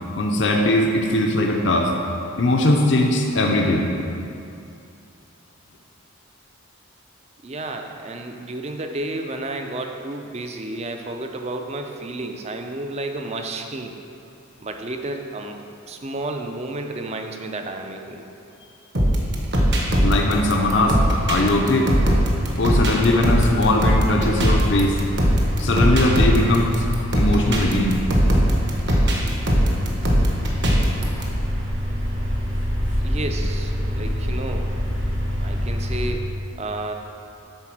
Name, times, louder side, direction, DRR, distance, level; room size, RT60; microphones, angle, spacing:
voice 1, 0.2-1.9 2.4-3.9 20.0-21.0 21.3-21.9 22.6-25.0 25.6-26.9 27.1-28.0, left 1 dB, 55° left, 1 dB, 0.6 m, -20 dB
voice 2, 7.4-14.0 14.6-15.6 15.9-18.3 33.0-34.7 35.4-36.3 36.6-36.9, right 2 dB, 30° right, 4 dB, 0.5 m, -31 dB
sound 1, 18.9-31.2, equal, 55° right, 1.1 m, -20 dB
sound 2, 19.8-36.1, equal, 70° right, 1.8 m, -27 dB
8.7 x 3.9 x 6.0 m, 2.6 s
head